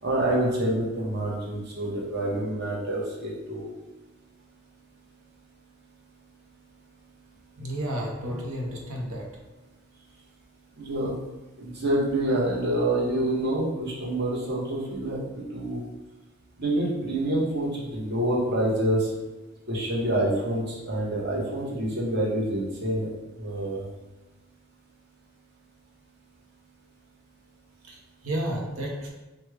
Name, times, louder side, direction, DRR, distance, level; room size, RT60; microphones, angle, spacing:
voice 1, 0.0-3.7 10.8-11.1 11.6-15.8 16.6-19.1 19.7-23.1 23.4-23.8, right 1 dB, 50° right, -4 dB, 1.0 m, -27 dB
voice 2, 7.6-9.3 27.9-29.1, right 1 dB, 80° right, 0 dB, 0.8 m, -32 dB
4.9 x 2.2 x 3.3 m, 1.1 s
head